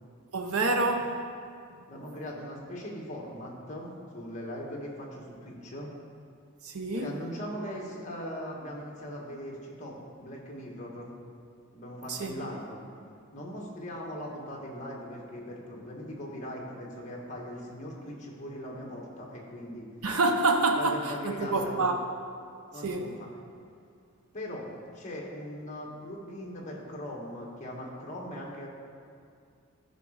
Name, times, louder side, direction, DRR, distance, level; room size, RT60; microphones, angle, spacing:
voice 1, 0.3-1.2 6.6-7.2 12.1-12.4 20.0-22.0 22.8-23.1, right 2 dB, 85° right, 4 dB, 0.7 m, -27 dB
voice 2, 1.9-5.9 6.9-11.1 11.7-12.8 13.3-19.9 20.8-21.8 22.7-23.3 24.3-24.7 24.9-28.7, equal, 35° left, -2 dB, 1.7 m, -40 dB
13.5 x 5.1 x 5.0 m, 2.4 s
head